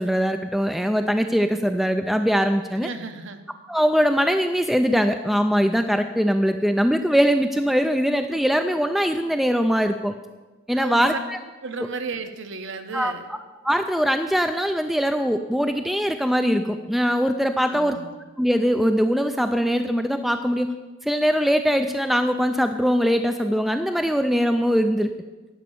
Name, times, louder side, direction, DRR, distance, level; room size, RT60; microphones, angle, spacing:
voice 1, 0.0-2.9 3.7-10.1 10.7-11.4 12.9-13.1 13.6-18.0 18.4-20.7 21.0-25.1, equal, ahead, 7 dB, 0.3 m, -21 dB
voice 2, 2.7-3.4 10.7-11.0 11.6-13.3 17.6-18.2, right 4 dB, 55° right, 8 dB, 0.8 m, -34 dB
11.0 x 5.2 x 8.4 m, 1.2 s
head